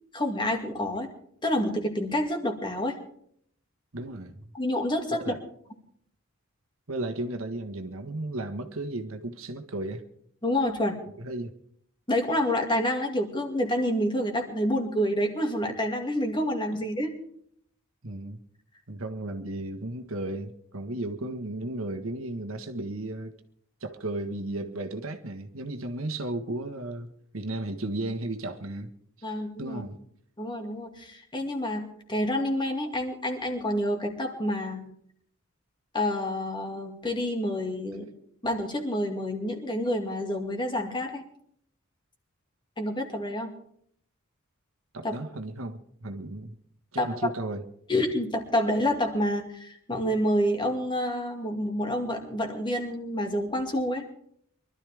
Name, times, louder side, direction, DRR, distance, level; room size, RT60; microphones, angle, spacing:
voice 1, 0.1-1.1 1.4-3.0 4.5-5.3 10.4-11.0 12.1-17.1 29.2-29.8 30.4-34.9 35.9-38.1 38.4-41.2 42.8-43.5 45.0-45.2 47.0-47.2 47.9-54.0, left 1 dB, 20° left, 4 dB, 2.3 m, -28 dB
voice 2, 3.9-4.5 5.1-5.4 6.9-10.0 11.2-11.5 18.0-18.4 18.9-23.3 23.8-28.9 29.2-30.0 44.9-46.6 46.9-47.6, right 2 dB, 75° right, 6 dB, 1.6 m, -34 dB
24.0 x 13.0 x 3.5 m, 0.64 s
head